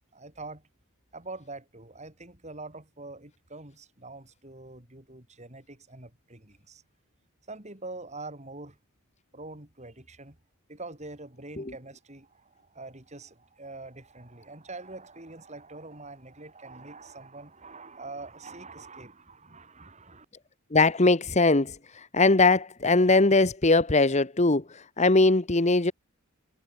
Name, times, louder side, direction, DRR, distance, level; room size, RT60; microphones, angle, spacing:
voice 1, 0.1-0.7 1.1-6.8 7.5-8.8 9.3-10.4 10.7-20.3, right 2 dB, 30° right, 4.6 m, -44 dB
voice 2, 20.7-25.9, left 3 dB, 30° left, 1.2 m, -21 dB
head